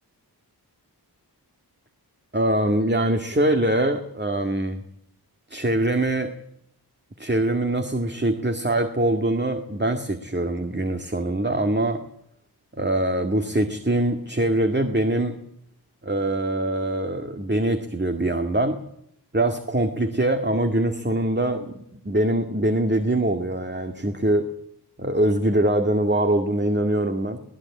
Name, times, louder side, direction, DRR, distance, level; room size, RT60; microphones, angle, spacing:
voice 1, 2.3-4.8 5.5-6.3 7.2-12.0 12.8-15.4 16.0-18.8 19.3-24.4 25.0-27.4, right 1 dB, 25° right, 6 dB, 2.0 m, -23 dB
22.0 x 18.5 x 8.6 m, 0.74 s
wide cardioid pair, 50°, 40 cm